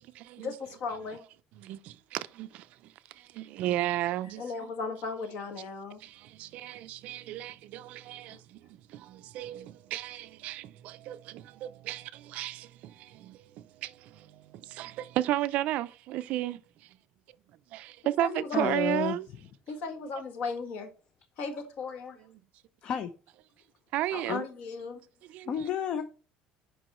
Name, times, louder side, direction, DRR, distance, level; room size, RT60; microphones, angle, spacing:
voice 1, 0.4-1.2 4.4-6.0 8.3-8.4 18.2-18.7 19.7-20.9 21.4-22.2 24.1-25.0, left 4 dB, 55° left, 1.5 m, -36 dB
voice 2, 1.6-4.7 6.0-8.6 8.9-17.0 17.7-19.3 23.9-24.5 25.3-25.5, right 14 dB, 55° right, 0.4 m, -34 dB
voice 3, 18.5-19.2 21.5-21.6 22.1-22.2 22.8-23.1 24.3-24.4 25.4-26.0, left 8 dB, 35° left, 0.5 m, -31 dB
7.6 x 5.3 x 4.2 m
cardioid pair, 180°, 3 cm